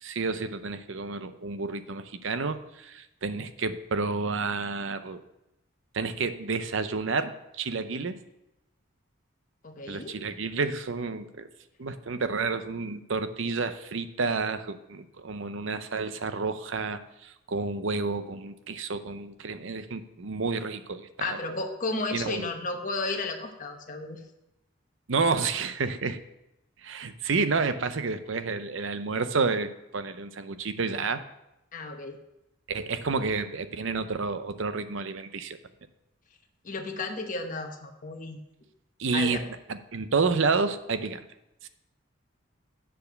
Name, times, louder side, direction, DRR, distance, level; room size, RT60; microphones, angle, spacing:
voice 1, 0.0-5.2 5.9-8.2 9.9-11.5 11.8-21.4 22.1-22.5 25.1-26.2 26.8-31.2 32.7-35.6 39.0-39.4 39.7-41.2 41.6-41.7, right 4 dB, 65° right, 11 dB, 0.6 m, -30 dB
voice 2, 9.6-10.1 21.2-24.2 31.7-32.2 36.6-38.4 39.1-39.4, left 3 dB, 40° left, 4 dB, 1.0 m, -33 dB
7.8 x 6.8 x 6.6 m, 0.90 s
head